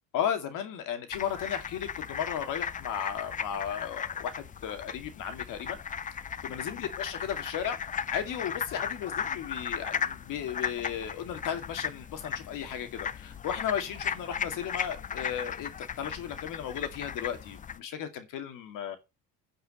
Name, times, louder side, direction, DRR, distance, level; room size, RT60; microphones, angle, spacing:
voice 1, 0.1-5.8 6.1-7.8 8.1-19.0, left 9 dB, 65° left, 2.3 m, -35 dB
sound 1, 1.1-17.8, left 7 dB, 25° left, 0.5 m, -36 dB
9.9 x 5.5 x 7.8 m
cardioid pair, 125°, 34 cm